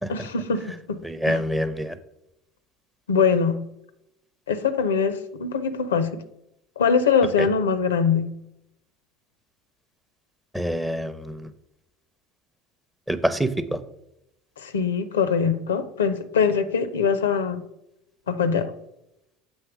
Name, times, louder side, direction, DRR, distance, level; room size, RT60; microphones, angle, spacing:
voice 1, 0.1-1.0 1.3-1.4 3.1-3.6 4.5-6.2 6.8-8.3 14.6-17.6 18.3-18.7, left 6 dB, 80° left, 11 dB, 0.4 m, -23 dB
voice 2, 1.0-2.0 7.4-7.5 10.5-11.5 13.1-13.8, equal, 5° right, 11 dB, 0.6 m, -26 dB
7.1 x 3.1 x 5.9 m, 0.83 s
hypercardioid pair, 70°, 0 cm